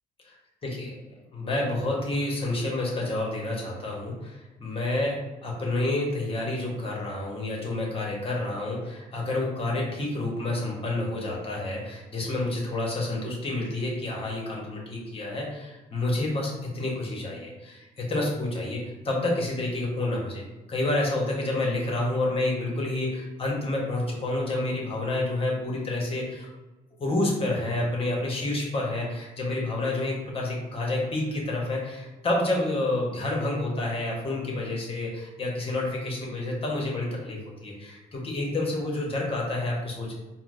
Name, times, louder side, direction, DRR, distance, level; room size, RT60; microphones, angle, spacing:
voice 1, 1.3-20.4 20.7-26.5 27.0-40.2, left 2 dB, 35° left, -2 dB, 1.1 m, -29 dB
4.2 x 2.1 x 2.5 m, 1.1 s
cardioid pair, 80°, 17 cm